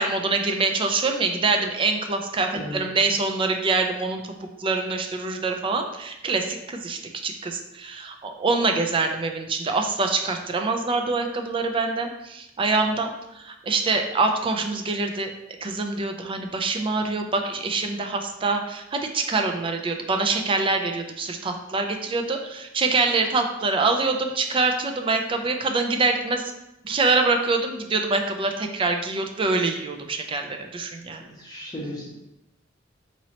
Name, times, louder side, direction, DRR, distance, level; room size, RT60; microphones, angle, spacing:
voice 1, 0.0-4.2 4.6-15.3 15.6-26.5 26.8-31.2, right 3 dB, 25° right, 4 dB, 0.3 m, -25 dB
voice 2, 31.2-32.1, equal, 20° left, -5 dB, 1.0 m, -35 dB
4.0 x 3.0 x 2.8 m, 0.88 s
head